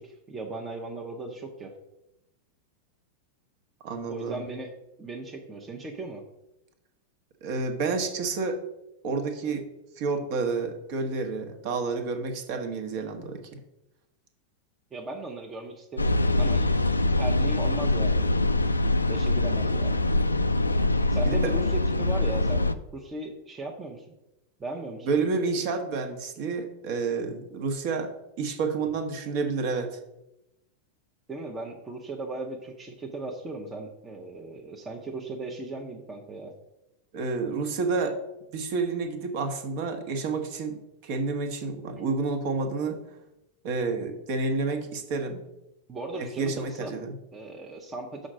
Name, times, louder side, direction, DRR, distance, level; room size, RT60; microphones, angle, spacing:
voice 1, 0.0-1.7 4.1-4.7 5.0-6.2 14.9-16.1 16.4-18.4 18.8-20.0 21.1-24.1 24.6-25.1 31.3-36.5 45.9-46.9 47.3-48.3, right 2 dB, 20° right, 0 dB, 0.8 m, -37 dB
voice 2, 3.8-4.4 7.4-8.6 9.0-9.6 10.0-13.6 21.3-21.5 25.1-28.1 28.4-30.0 37.1-38.2 38.5-43.0 43.6-45.4 46.2-47.2, right 4 dB, 45° right, 6 dB, 1.1 m, -29 dB
sound 1, 16.0-22.7, left 2 dB, 80° left, 0.3 m, -24 dB
6.3 x 3.9 x 6.2 m, 0.90 s
figure-of-eight pair, 90°, 0 cm